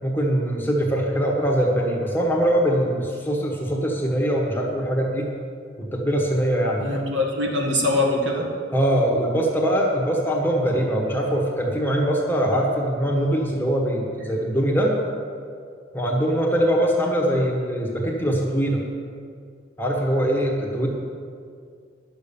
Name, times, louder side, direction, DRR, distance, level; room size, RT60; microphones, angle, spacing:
voice 1, 0.0-5.3 5.8-6.8 8.7-14.9 15.9-18.8 19.8-20.9, equal, 10° left, -1 dB, 1.3 m, -22 dB
voice 2, 6.8-8.5, left 1 dB, 70° right, 0 dB, 1.9 m, -23 dB
11.0 x 6.9 x 7.1 m, 2.2 s
head